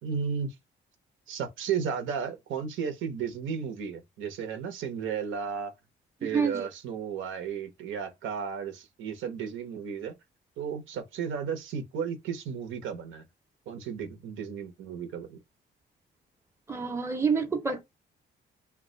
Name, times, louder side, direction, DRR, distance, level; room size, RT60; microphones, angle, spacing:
voice 1, 0.0-0.6 1.3-5.7 6.2-10.1 10.6-13.2 13.7-15.4, right 7 dB, 80° right, 0.8 m, -34 dB
voice 2, 6.2-6.7 16.7-17.8, right 5 dB, 15° right, 0.7 m, -28 dB
2.3 x 2.2 x 3.7 m
cardioid pair, 90°, 20 cm